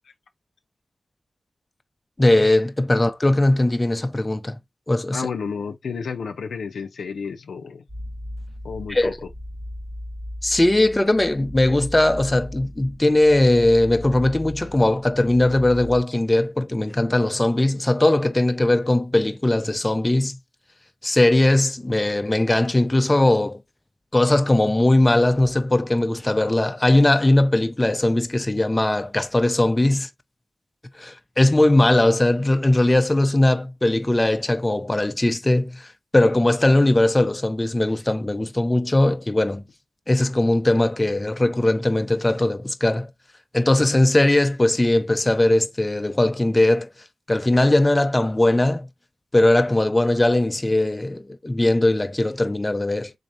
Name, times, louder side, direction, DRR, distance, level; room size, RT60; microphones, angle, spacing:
voice 1, 2.2-4.6 4.9-5.3 8.9-9.1 10.4-20.4 21.0-23.6 24.1-30.1 31.0-39.6 40.1-43.1 43.5-46.9 47.3-48.9 49.3-53.1, left 1 dB, 25° left, 0.7 m, -19 dB
voice 2, 5.1-7.8 8.6-9.1, left 5 dB, 85° left, 0.5 m, -31 dB
sound 1, 7.9-16.0, left 1 dB, 25° right, 1.1 m, -37 dB
4.0 x 3.3 x 2.6 m
cardioid pair, 40°, 0 cm